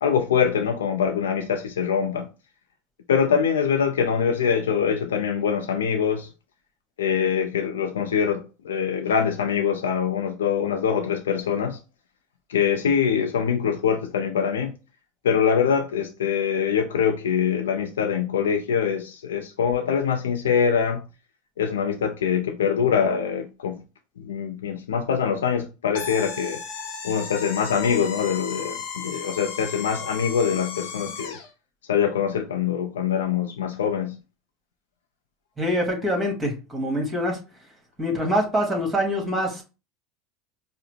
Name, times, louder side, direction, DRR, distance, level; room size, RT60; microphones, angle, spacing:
voice 1, 0.0-2.3 3.1-6.3 7.0-11.8 12.5-14.7 15.2-21.1 21.6-23.8 24.2-26.6 27.0-31.4 31.9-34.2, left 7 dB, 85° left, 0.4 m, -24 dB
sound 1, 25.9-31.5, left 5 dB, 70° left, 0.9 m, -35 dB
voice 2, 35.6-37.4 38.0-39.6, equal, 20° right, 1.6 m, -25 dB
4.7 x 2.0 x 3.2 m
hypercardioid pair, 90°, 0 cm